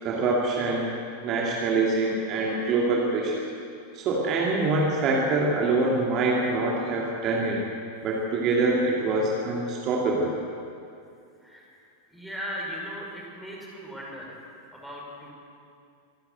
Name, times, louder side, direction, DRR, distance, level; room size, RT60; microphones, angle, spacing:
voice 1, 0.0-3.4 3.9-7.6 8.0-10.3, right 3 dB, 35° right, -2 dB, 2.9 m, -25 dB
voice 2, 11.4-11.7 12.1-14.4 14.7-15.3, equal, 5° left, -3 dB, 5.8 m, -38 dB
25.5 x 12.5 x 8.0 m, 2.4 s
figure-of-eight pair, 90°, 0 cm